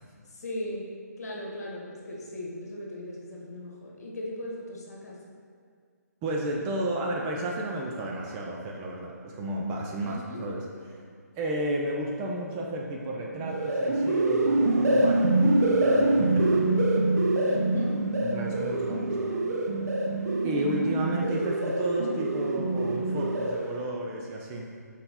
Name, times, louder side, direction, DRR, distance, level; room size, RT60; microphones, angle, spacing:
voice 1, 0.3-0.9 1.2-5.2 10.0-10.4 17.5-18.0 19.2-19.6 20.2-20.7 21.2-21.6, left 1 dB, 65° left, -2 dB, 1.5 m, -38 dB
voice 2, 6.2-10.6 10.9-11.0 11.4-16.6 18.2-19.3 20.4-24.7, right 1 dB, 20° right, -2 dB, 0.5 m, -32 dB
sound 1, 13.3-23.9, right 2 dB, 65° right, 0.7 m, -25 dB
5.7 x 4.1 x 4.1 m, 2.1 s
figure-of-eight pair, 150°, 9 cm